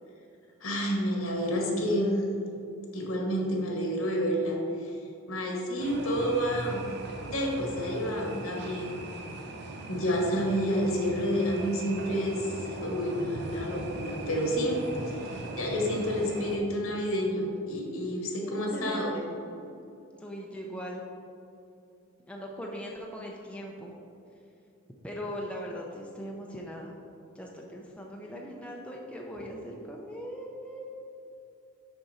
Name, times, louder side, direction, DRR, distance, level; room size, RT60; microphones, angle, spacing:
voice 1, 0.6-2.2 2.9-5.0 5.3-6.9 7.2-9.0 9.9-19.1, equal, 75° left, -1 dB, 1.4 m, -29 dB
sound 1, 5.8-16.6, right 2 dB, 50° right, 0.7 m, -39 dB
voice 2, 18.5-19.0 19.4-19.8 20.2-21.0 22.3-23.9 25.0-27.0 27.3-31.0, equal, 5° left, -2 dB, 0.5 m, -40 dB
6.5 x 6.0 x 4.2 m, 2.7 s
head